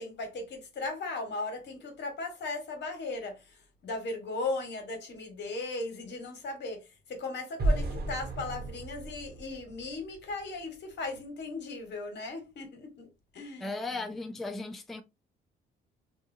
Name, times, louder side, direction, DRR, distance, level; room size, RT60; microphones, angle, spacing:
voice 1, 0.0-14.1, left 3 dB, 60° left, 1.2 m, -37 dB
sound 1, 7.6-10.6, right 2 dB, 55° right, 1.0 m, -33 dB
voice 2, 13.6-15.0, left 3 dB, ahead, 0.3 m, -36 dB
2.9 x 2.2 x 2.5 m
cardioid pair, 90°, 20 cm